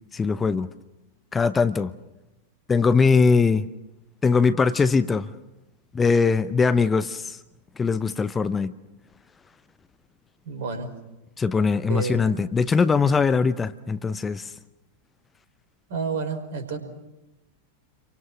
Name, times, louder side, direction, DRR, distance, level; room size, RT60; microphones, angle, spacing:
voice 1, 0.1-0.7 1.3-1.9 2.7-3.7 4.2-5.3 5.9-7.4 7.8-8.7 11.4-14.5, left 5 dB, 15° left, 0.8 m, -21 dB
voice 2, 10.4-10.9 11.9-12.2 15.9-16.8, right 5 dB, 55° right, 4.9 m, -29 dB
29.5 x 24.5 x 6.1 m
figure-of-eight pair, 90°, 0 cm